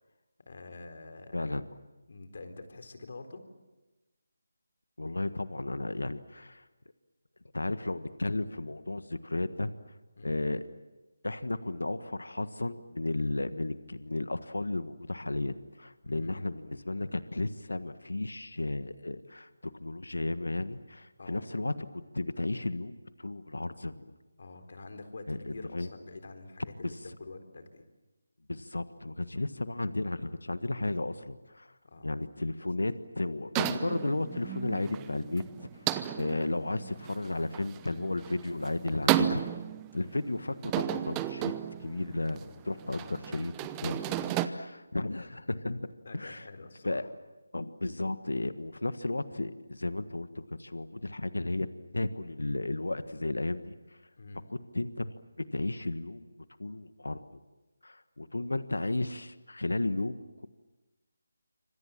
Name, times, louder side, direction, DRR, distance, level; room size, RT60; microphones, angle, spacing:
voice 1, 0.5-1.6 2.1-3.4 10.2-10.4 16.1-16.3 21.2-21.5 24.4-27.8 31.8-32.1 42.8-43.1 43.9-44.2 46.0-47.1 54.2-54.4, left 3 dB, 55° left, 7 dB, 4.1 m, -46 dB
voice 2, 1.3-1.6 5.0-6.6 7.5-9.7 10.2-10.6 11.2-24.1 25.3-25.9 26.8-26.9 28.5-31.7 32.0-35.7 36.1-39.4 39.9-41.5 41.8-43.5 43.8-44.0 44.3-46.4 46.8-47.1 47.5-51.7 51.9-53.7 54.5-56.3 56.6-57.4 57.8-60.5, left 2 dB, 85° left, 12 dB, 1.5 m, -34 dB
sound 1, 33.6-44.5, right 13 dB, 15° right, 0.8 m, -34 dB
27.5 x 25.5 x 7.5 m, 1.1 s
figure-of-eight pair, 160°, 0 cm